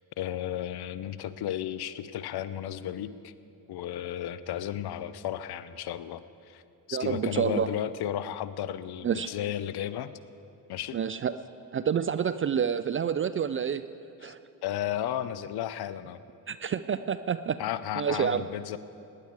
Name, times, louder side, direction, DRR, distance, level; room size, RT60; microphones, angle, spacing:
voice 1, 0.2-3.3 3.7-6.6 6.9-10.1 10.7-11.0 14.2-14.3 14.6-16.2 17.6-18.8, left 11 dB, 50° left, 15 dB, 0.7 m, -34 dB
voice 2, 6.9-7.7 9.0-9.3 10.9-11.4 11.7-13.9 14.2-14.4 16.5-17.6 18.0-18.5, right 7 dB, 30° right, 12 dB, 0.4 m, -28 dB
18.5 x 10.5 x 4.8 m, 2.7 s
hypercardioid pair, 50°, 49 cm